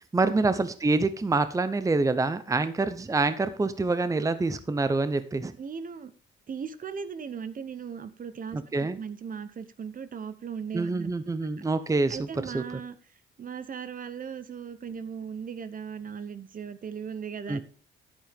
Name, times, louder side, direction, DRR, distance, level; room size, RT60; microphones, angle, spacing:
voice 1, 0.1-5.5 8.5-9.0 10.7-12.6 17.5-17.6, right 3 dB, 15° right, 12 dB, 0.8 m, -26 dB
voice 2, 5.6-6.1 6.5-8.6 8.9-11.1 12.1-13.0 13.4-17.6, right 6 dB, 45° right, 13 dB, 1.0 m, -37 dB
10.5 x 8.9 x 3.6 m, 0.39 s
cardioid pair, 90°, 20 cm